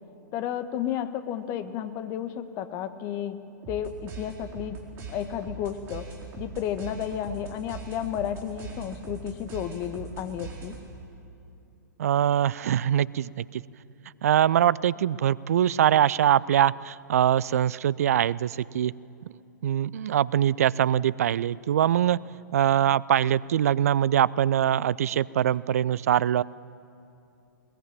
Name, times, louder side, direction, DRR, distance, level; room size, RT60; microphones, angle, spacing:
voice 1, 0.3-3.4 3.7-4.8 5.1-6.0 6.4-10.8, left 10 dB, 30° left, 10 dB, 1.3 m, -32 dB
sound 1, 3.6-11.1, right 5 dB, 25° right, 4.0 m, -41 dB
voice 2, 12.0-13.6 14.2-18.9 19.6-22.2 22.5-26.4, right 10 dB, 55° right, 22 dB, 0.4 m, -23 dB
21.5 x 21.0 x 8.9 m, 2.6 s
figure-of-eight pair, 110°, 10 cm